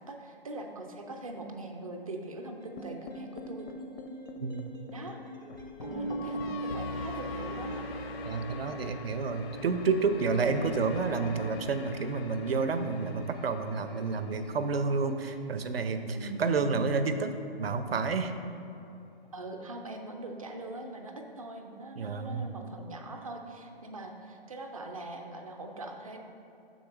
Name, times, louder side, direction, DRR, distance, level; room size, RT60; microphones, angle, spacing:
voice 1, 0.0-3.7 4.9-5.2 5.8-7.8 16.1-16.5 19.3-26.2, right 2 dB, 35° right, 3 dB, 0.5 m, -41 dB
sound 1, 2.6-16.6, right 1 dB, 20° left, 0.4 m, -51 dB
sound 2, 2.8-15.0, left 1 dB, 80° left, 0.6 m, -41 dB
voice 2, 4.4-4.7 8.2-18.3 22.0-22.5, right 4 dB, 75° right, 9 dB, 0.6 m, -30 dB
6.4 x 4.2 x 5.8 m, 2.8 s
hypercardioid pair, 175°, 30 cm